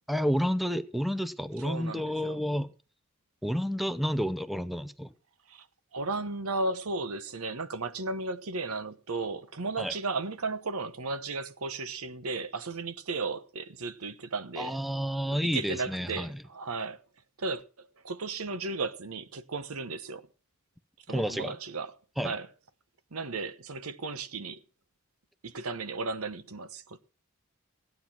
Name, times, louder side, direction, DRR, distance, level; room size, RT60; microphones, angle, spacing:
voice 1, 0.1-2.7 3.4-5.1 9.8-9.9 14.6-16.4 21.1-21.5 22.2-22.3, equal, ahead, 0.6 m, -30 dB
voice 2, 1.6-2.4 5.5-5.7 5.9-14.8 15.4-17.0 17.4-20.3 21.1-21.9 22.2-22.5 23.1-24.6 25.4-27.1, right 3 dB, 85° right, 1.0 m, -35 dB
15.5 x 9.4 x 5.9 m
head